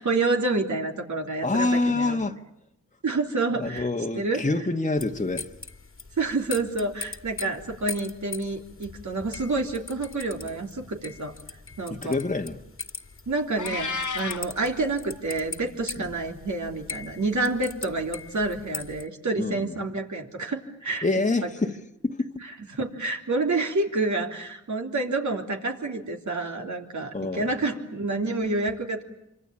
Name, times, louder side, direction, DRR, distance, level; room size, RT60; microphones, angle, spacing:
voice 1, 0.0-2.2 3.0-3.9 4.2-4.4 6.2-11.3 11.8-12.2 13.3-21.1 21.4-21.5 22.7-29.0, right 3 dB, 65° right, 3.4 m, -28 dB
voice 2, 1.4-2.4 3.6-5.5 11.9-12.6 16.0-16.1 19.4-19.7 21.0-22.4 27.1-27.5, left 2 dB, 25° left, 1.5 m, -27 dB
sound 1, 5.0-19.0, left 4 dB, 45° left, 1.9 m, -41 dB
Meow, 13.6-14.5, left 5 dB, 70° left, 1.2 m, -31 dB
26.5 x 25.0 x 8.8 m
cardioid pair, 50°, 32 cm